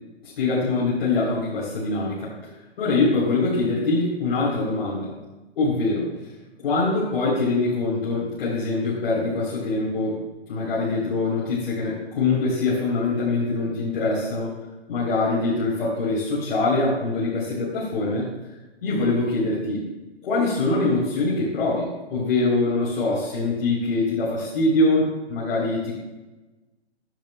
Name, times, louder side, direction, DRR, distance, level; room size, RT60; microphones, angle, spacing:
voice 1, 0.2-2.3 2.8-5.1 5.6-6.1 6.6-10.2 10.5-14.5 14.9-18.3 18.8-19.8 20.2-25.9, left 3 dB, 55° left, -7 dB, 3.5 m, -23 dB
13.0 x 10.5 x 2.2 m, 1.1 s
hypercardioid pair, 135°, 33 cm